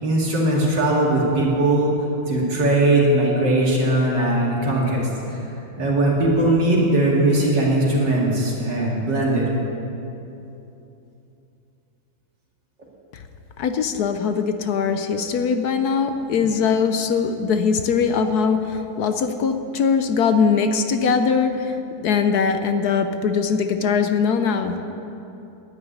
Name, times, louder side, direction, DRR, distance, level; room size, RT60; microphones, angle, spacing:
voice 1, 0.0-1.9 2.3-5.4 5.8-9.4 16.3-16.5, right 1 dB, 55° right, -4 dB, 2.8 m, -20 dB
voice 2, 13.6-24.9, left 6 dB, 65° left, 8 dB, 1.0 m, -21 dB
11.0 x 9.6 x 9.4 m, 2.9 s
omnidirectional pair, 2.3 m